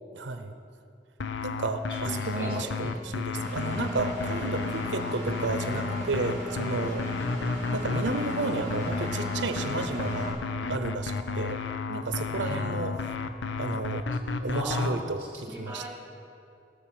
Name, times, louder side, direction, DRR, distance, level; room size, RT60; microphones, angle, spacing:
voice 1, 0.1-0.5 1.4-7.1 7.7-10.3 10.7-11.6 11.9-12.9 13.6-14.0 14.4-15.8, right 3 dB, 85° right, 9 dB, 0.7 m, -32 dB
sound 1, 1.2-14.9, left 4 dB, 90° left, 0.7 m, -32 dB
voice 2, 1.9-3.1 12.4-12.7 14.5-14.9 15.2-15.9, equal, 10° right, -4 dB, 3.2 m, -38 dB
Engine, 3.3-10.3, equal, 15° left, 3.6 m, -36 dB
17.0 x 7.0 x 7.4 m, 2.5 s
head